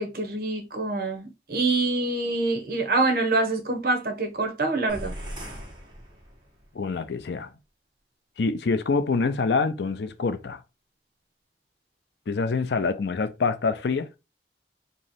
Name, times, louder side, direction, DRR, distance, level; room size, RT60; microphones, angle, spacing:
voice 1, 0.0-5.1, right 2 dB, 55° right, 0.8 m, -25 dB
sound 1, 4.9-6.7, equal, 25° right, 1.0 m, -39 dB
voice 2, 6.7-7.5 8.4-10.6 12.3-14.1, left 4 dB, 75° left, 0.5 m, -26 dB
3.1 x 2.7 x 4.1 m
head